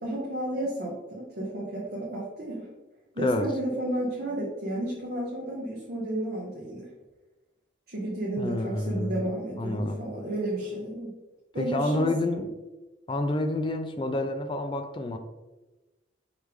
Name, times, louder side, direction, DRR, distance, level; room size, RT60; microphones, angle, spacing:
voice 1, 0.0-2.7 3.1-6.9 7.9-11.1 11.5-12.1, right 1 dB, 50° right, -5 dB, 0.8 m, -32 dB
voice 2, 8.4-9.2 9.6-10.0 11.6-12.5 13.1-15.2, left 1 dB, 25° left, 6 dB, 0.3 m, -28 dB
4.9 x 3.2 x 3.3 m, 1.1 s
head